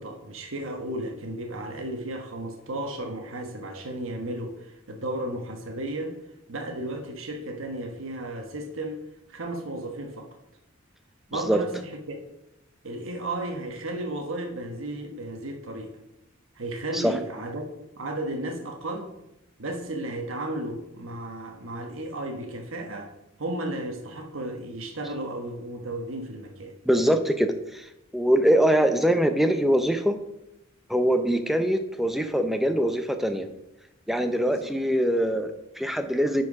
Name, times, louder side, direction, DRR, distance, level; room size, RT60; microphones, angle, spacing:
voice 1, 0.0-6.2 6.5-9.0 9.3-10.3 11.3-12.2 12.8-15.9 16.6-17.6 18.0-19.1 19.6-23.1 23.4-26.7 34.5-34.6, right 1 dB, 80° right, 3 dB, 1.2 m, -34 dB
voice 2, 26.9-27.9 28.1-30.2 30.9-33.5 34.1-36.4, equal, ahead, 7 dB, 0.6 m, -23 dB
10.5 x 4.6 x 4.8 m, 0.87 s
head